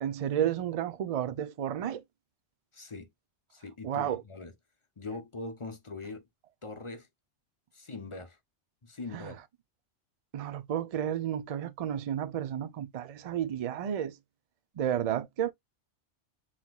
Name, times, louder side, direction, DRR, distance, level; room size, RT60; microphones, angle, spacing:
voice 1, 0.0-2.0 3.8-4.2 9.1-9.3 10.3-14.1 14.8-15.5, right 10 dB, 50° right, 0.4 m, -32 dB
voice 2, 2.7-3.1 3.5-4.5 5.0-6.2 6.6-7.1 7.7-8.4 8.8-9.4, left 3 dB, 35° left, 0.6 m, -41 dB
5.9 x 2.9 x 2.3 m
omnidirectional pair, 1.2 m